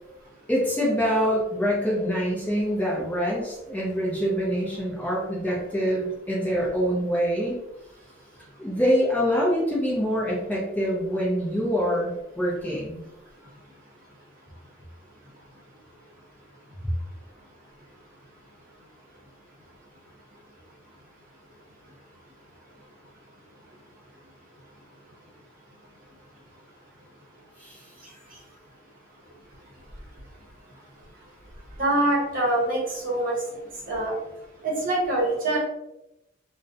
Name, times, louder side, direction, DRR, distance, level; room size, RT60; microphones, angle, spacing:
voice 1, 0.5-7.6 8.6-13.0 27.6-27.9, equal, 10° left, -5 dB, 0.4 m, -25 dB
voice 2, 31.8-33.4 33.9-34.1 34.6-35.6, right 1 dB, 45° right, -3 dB, 0.8 m, -24 dB
2.4 x 2.0 x 2.5 m, 0.90 s
head